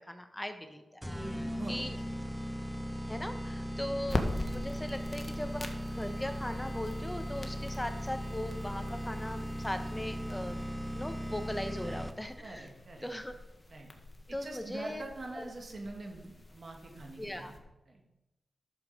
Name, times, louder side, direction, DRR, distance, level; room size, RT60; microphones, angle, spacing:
voice 1, 0.1-1.0 1.7-1.9 3.1-10.6 10.9-12.7 13.0-13.3 14.3-15.0 15.3-15.5 17.2-17.5, left 1 dB, 10° left, 7 dB, 1.1 m, -39 dB
sound 1, 1.0-12.4, equal, 5° right, 0.8 m, -38 dB
voice 2, 1.2-2.3 11.7-12.1 12.4-13.1 13.7-13.9 14.3-17.6 17.9-18.0, right 2 dB, 60° right, 1 dB, 2.4 m, -45 dB
sound 2, 4.0-17.6, left 1 dB, 30° left, 1.6 m, -43 dB
10.5 x 7.3 x 5.1 m, 0.97 s
cardioid pair, 45°, 0 cm